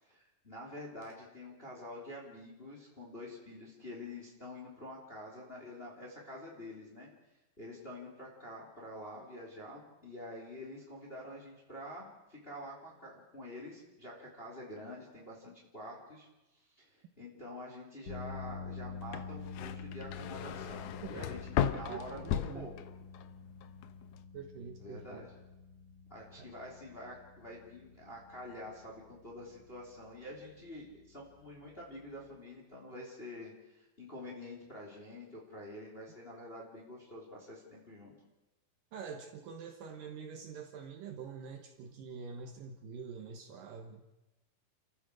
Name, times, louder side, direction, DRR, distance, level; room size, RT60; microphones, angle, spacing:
voice 1, 0.0-7.1 7.6-16.3 16.5-22.7 24.8-25.3 26.1-38.1, left 1 dB, 15° left, -2 dB, 3.5 m, -47 dB
sound 1, 18.1-32.3, left 5 dB, 45° left, 1.9 m, -48 dB
sound 2, 19.0-23.3 23.6-24.2, left 9 dB, 70° left, 2.0 m, -36 dB
voice 2, 21.7-22.7 24.3-25.3 26.4-26.5 38.9-44.0, right 6 dB, 70° right, 4 dB, 2.8 m, -46 dB
30.0 x 14.5 x 6.4 m, 1.0 s
omnidirectional pair, 4.2 m